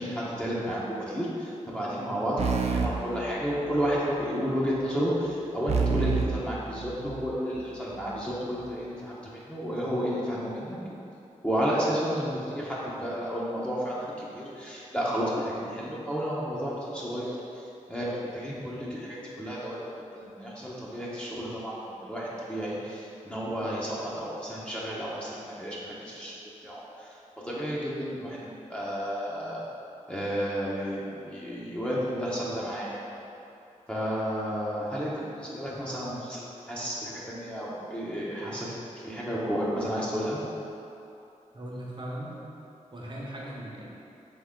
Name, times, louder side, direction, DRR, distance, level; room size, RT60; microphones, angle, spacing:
voice 1, 0.0-10.8 11.4-19.8 20.1-26.3 26.6-27.1 27.4-29.6 30.1-33.0 33.9-40.4, equal, 10° left, -7 dB, 0.9 m, -32 dB
sound 1, 2.4-4.0 5.7-7.4, right 5 dB, 55° right, 0.4 m, -29 dB
voice 2, 41.5-42.4 42.9-43.8, right 1 dB, 35° right, -4 dB, 1.0 m, -38 dB
3.6 x 3.5 x 3.7 m, 2.8 s
cardioid pair, 40°, 13 cm